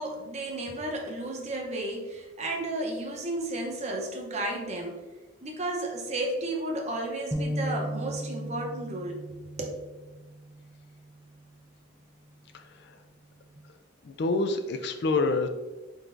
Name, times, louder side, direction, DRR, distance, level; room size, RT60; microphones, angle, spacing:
voice 1, 0.0-5.0 5.4-9.2 9.6-9.8, right 1 dB, 35° right, 1 dB, 0.8 m, -33 dB
sound 1, 7.3-11.6 12.1-12.3 13.1-13.6, equal, 10° right, 0.4 m, -37 dB
voice 2, 12.5-13.0 14.0-15.5, left 3 dB, 60° left, 8 dB, 0.4 m, -27 dB
4.5 x 3.9 x 2.6 m, 1.2 s
head